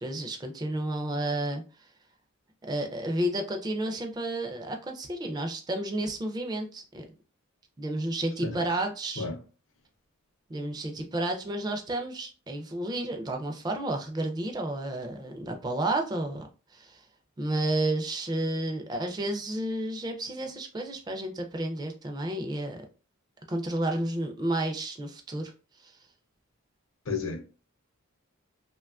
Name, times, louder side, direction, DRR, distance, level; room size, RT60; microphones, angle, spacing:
voice 1, 0.0-1.6 2.7-7.0 7.8-9.3 10.5-17.1 17.4-22.9 23.5-25.5 25.8-25.9, right 1 dB, 20° right, 0.3 m, -31 dB
voice 2, 27.1-27.4, left 4 dB, 60° left, 0.6 m, -32 dB
2.9 x 2.2 x 2.3 m
head